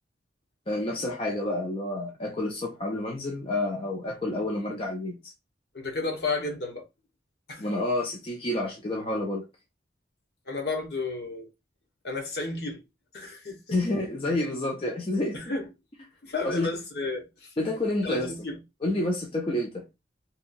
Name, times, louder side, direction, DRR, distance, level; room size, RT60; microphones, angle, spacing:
voice 1, 0.7-5.2 7.6-9.5 13.7-15.5 16.4-16.7 17.6-18.3 18.8-19.9, left 1 dB, 30° left, 0.5 m, -29 dB
voice 2, 5.7-6.9 7.5-7.7 10.5-11.5 12.0-12.8 13.1-13.8 15.3-15.7 16.2-17.7 18.0-18.6, left 3 dB, 60° left, 0.9 m, -32 dB
2.8 x 2.3 x 2.5 m
head